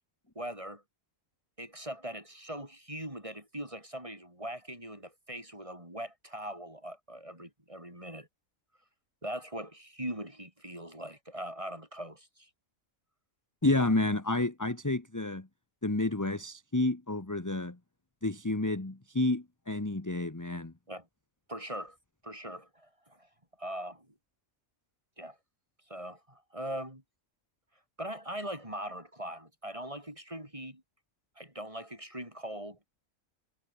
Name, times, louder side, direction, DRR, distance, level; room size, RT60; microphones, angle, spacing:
voice 1, 0.4-0.8 1.6-8.3 9.2-12.5 20.9-21.1 21.5-22.0 22.2-23.3 23.6-24.1 25.2-25.4 25.9-27.0 28.0-30.8 31.4-32.8, right 1 dB, 20° right, 7.3 m, -41 dB
voice 2, 13.6-15.5 15.8-17.8 18.2-20.7, left 2 dB, 15° left, 1.4 m, -30 dB
omnidirectional pair, 1.5 m